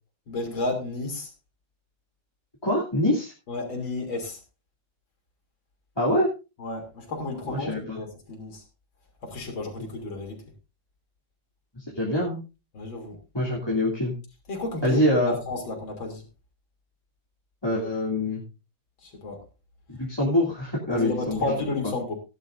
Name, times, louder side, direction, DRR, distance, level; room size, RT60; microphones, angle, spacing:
voice 1, 0.3-1.3 3.5-4.4 6.6-8.6 9.2-10.4 12.7-13.2 14.5-16.2 19.0-19.4 20.9-22.1, left 3 dB, 85° left, 3 dB, 3.9 m, -32 dB
voice 2, 2.6-3.3 6.0-6.3 7.5-8.0 11.8-12.4 13.3-14.1 14.8-15.3 17.6-18.4 19.9-21.4, left 1 dB, 10° left, -4 dB, 2.9 m, -24 dB
17.5 x 11.0 x 2.6 m, 0.29 s
omnidirectional pair, 2.1 m